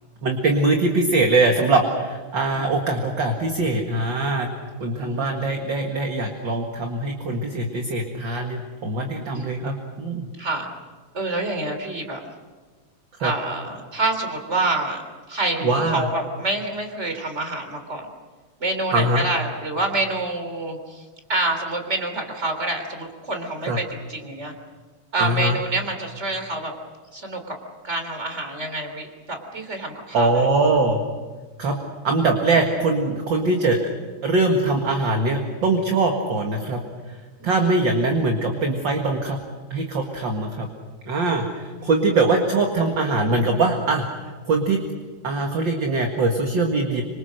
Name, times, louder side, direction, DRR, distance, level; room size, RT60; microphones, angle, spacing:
voice 1, 0.2-4.5 4.8-10.3 13.2-13.3 15.6-16.1 18.9-19.2 23.7-23.8 25.2-25.6 30.1-31.0 31.6-31.8 32.0-33.8 34.2-36.8 37.4-39.4 39.7-40.7 41.1-44.1 44.5-44.8 45.2-47.0, right 2 dB, 45° right, 3 dB, 2.2 m, -22 dB
voice 2, 5.0-5.7 9.3-9.6 10.4-10.7 11.1-12.2 13.2-15.0 15.3-18.0 18.6-24.5 25.1-26.7 27.1-27.5 27.8-30.3 37.4-37.5 41.8-41.9, right 2 dB, 20° right, 5 dB, 3.7 m, -27 dB
26.5 x 25.0 x 6.5 m, 1.4 s
omnidirectional pair, 3.4 m